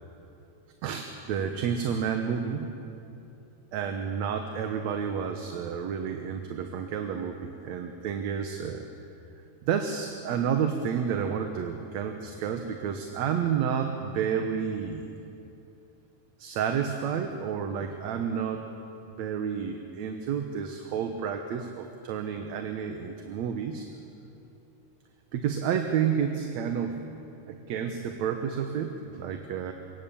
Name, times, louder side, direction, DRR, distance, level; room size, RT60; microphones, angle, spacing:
voice 1, 0.8-2.7 3.7-8.9 9.7-15.1 16.4-18.7 19.2-23.9 25.3-27.0 27.5-29.7, right 7 dB, 70° right, 5 dB, 2.3 m, -30 dB
25.5 x 23.5 x 7.1 m, 2.8 s
omnidirectional pair, 3.4 m